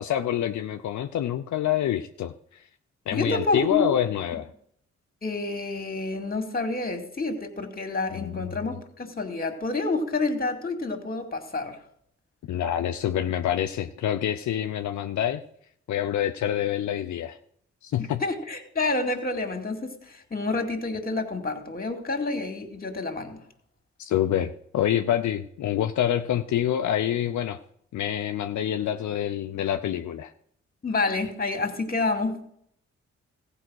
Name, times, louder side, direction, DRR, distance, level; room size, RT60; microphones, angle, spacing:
voice 1, 0.0-2.3 3.1-4.5 8.1-8.5 12.5-15.4 15.9-17.4 17.8-18.2 24.0-27.6 27.9-30.3, left 11 dB, 75° left, 7 dB, 0.6 m, -26 dB
voice 2, 3.1-4.0 5.2-11.8 18.0-23.4 30.8-32.4, left 3 dB, 30° left, 5 dB, 2.3 m, -28 dB
15.0 x 5.1 x 6.3 m, 0.67 s
cardioid pair, 55°, 29 cm